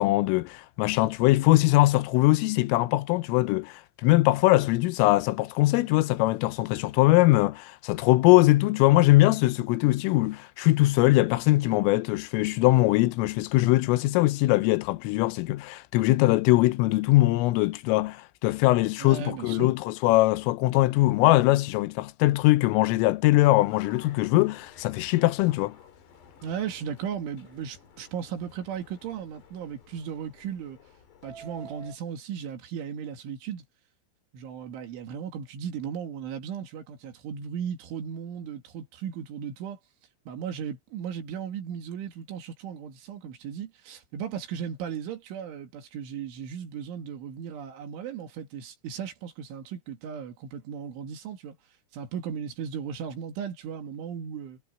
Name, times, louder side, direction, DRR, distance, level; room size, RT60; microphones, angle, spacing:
voice 1, 0.0-25.8, left 18 dB, 85° left, 3.4 m, -22 dB
voice 2, 19.0-19.7 26.4-30.8 31.2-33.6 34.3-39.8 40.3-51.6 51.9-54.6, right 8 dB, 70° right, 4.7 m, -36 dB
Subway metro underground, 23.6-32.0, left 1 dB, 60° left, 5.7 m, -51 dB
omnidirectional pair, 5.7 m